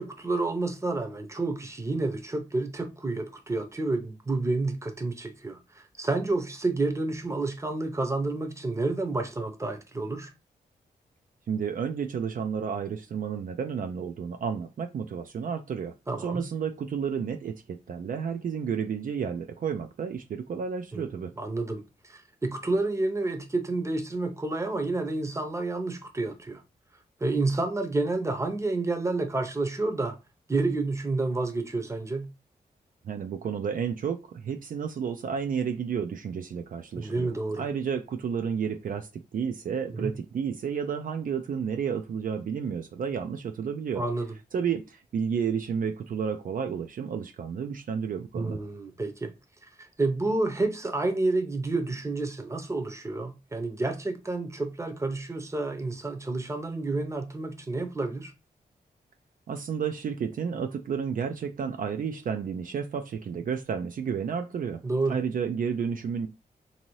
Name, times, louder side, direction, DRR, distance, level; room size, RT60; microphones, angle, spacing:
voice 1, 0.0-10.3 16.1-16.5 20.9-21.1 21.4-26.6 27.2-30.2 30.5-32.3 37.0-37.6 39.9-40.1 43.9-44.3 48.3-49.3 49.8-58.3 64.8-65.2, right 2 dB, 20° right, 0.7 m, -29 dB
voice 2, 11.5-15.9 16.2-21.3 33.1-44.0 44.5-48.6 59.5-64.8 65.1-66.3, right 7 dB, 60° right, 0.4 m, -31 dB
2.7 x 2.6 x 3.0 m
cardioid pair, 65°, 16 cm